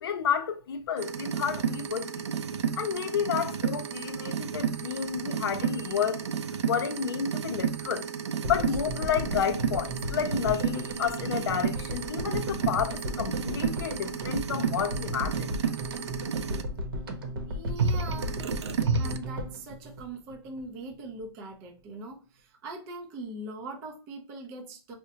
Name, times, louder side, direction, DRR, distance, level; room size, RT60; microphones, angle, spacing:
voice 1, 0.0-2.2 2.8-8.1 8.5-15.5, left 7 dB, 55° left, 0.6 m, -31 dB
sound 1, 1.0-16.6 17.8-19.2, right 6 dB, 75° right, 0.5 m, -32 dB
sound 2, 8.4-20.7 20.9-21.0 21.2-21.3, equal, 50° right, 0.9 m, -36 dB
voice 2, 17.5-18.5 19.0-25.0, right 2 dB, 20° right, 0.5 m, -41 dB
4.7 x 2.1 x 2.8 m
hypercardioid pair, 160°, 15 cm